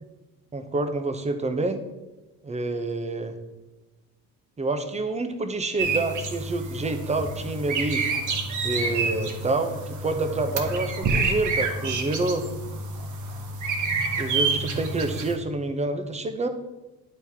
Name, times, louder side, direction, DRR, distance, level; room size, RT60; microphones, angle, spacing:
voice 1, 0.5-1.8 2.4-3.4 4.6-8.1 8.6-12.5 14.2-16.5, right 2 dB, 20° right, 8 dB, 0.8 m, -28 dB
sound 1, 5.8-15.3, right 4 dB, 55° right, 1.2 m, -28 dB
10.0 x 4.1 x 3.6 m, 1.1 s
cardioid pair, 90°, 36 cm